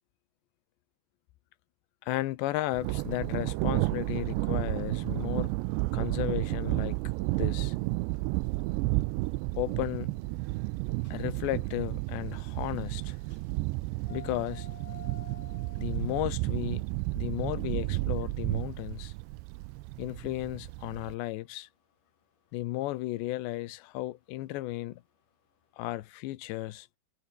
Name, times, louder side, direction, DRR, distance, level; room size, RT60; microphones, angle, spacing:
voice 1, 2.0-5.5 5.9-7.0 7.4-7.8 9.6-10.1 11.1-13.2 14.1-14.7 15.8-16.8 17.2-19.1 20.0-21.7 22.5-25.0 25.8-26.9, left 17 dB, 80° left, 3.2 m, -34 dB
Thunder, 2.7-21.2, right 22 dB, 85° right, 2.8 m, -32 dB
sound 1, 11.0-25.7, left 7 dB, 50° left, 4.6 m, -56 dB
omnidirectional pair, 5.1 m